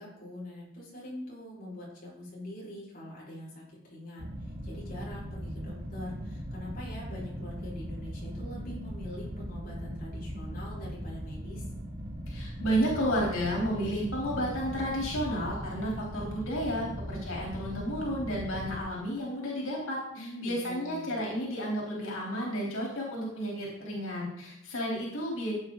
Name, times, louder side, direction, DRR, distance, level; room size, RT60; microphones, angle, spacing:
voice 1, 0.0-4.3 4.6-11.6 20.2-21.1, left 1 dB, 45° left, -5 dB, 5.5 m, -43 dB
sound 1, 4.2-18.8, equal, 50° right, 2.2 m, -39 dB
voice 2, 12.3-25.5, equal, 90° left, -3 dB, 3.9 m, -32 dB
15.0 x 8.8 x 4.0 m, 0.77 s
head